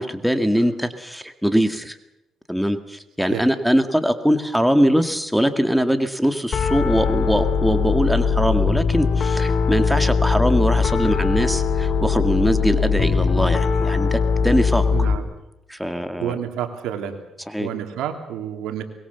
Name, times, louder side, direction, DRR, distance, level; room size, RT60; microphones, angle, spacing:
voice 1, 0.0-2.0 2.5-15.1 15.7-16.4 17.5-17.7, equal, ahead, 8 dB, 2.0 m, -22 dB
voice 2, 3.2-3.5 14.9-15.3 16.2-17.2 17.6-18.8, right 10 dB, 90° right, 6 dB, 3.0 m, -29 dB
Piano, 6.5-15.2, left 5 dB, 55° left, 2.7 m, -20 dB
24.0 x 21.5 x 7.0 m, 0.90 s
cardioid pair, 90°, 0 cm